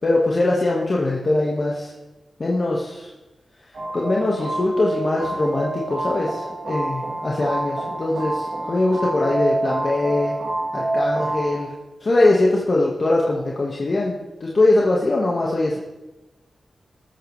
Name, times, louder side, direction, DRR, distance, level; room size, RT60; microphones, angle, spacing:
voice 1, 0.0-1.9 2.4-3.1 3.9-10.3 10.7-11.7 12.0-15.8, left 2 dB, 50° left, -3 dB, 1.9 m, -21 dB
sound 1, 3.7-11.6, right 2 dB, 70° right, 3.2 m, -27 dB
20.0 x 8.7 x 3.4 m, 1.1 s
cardioid pair, 60°, 0 cm